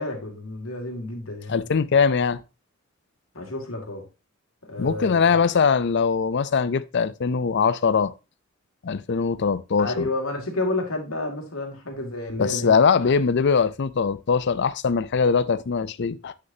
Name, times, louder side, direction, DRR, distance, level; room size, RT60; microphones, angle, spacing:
voice 1, 0.0-1.7 3.3-4.0 4.6-5.4 9.8-12.7, left 2 dB, 85° left, 2.4 m, -30 dB
voice 2, 1.5-2.4 4.8-8.1 8.8-10.1 12.4-16.3, left 5 dB, 55° left, 0.5 m, -21 dB
8.0 x 6.4 x 2.7 m
head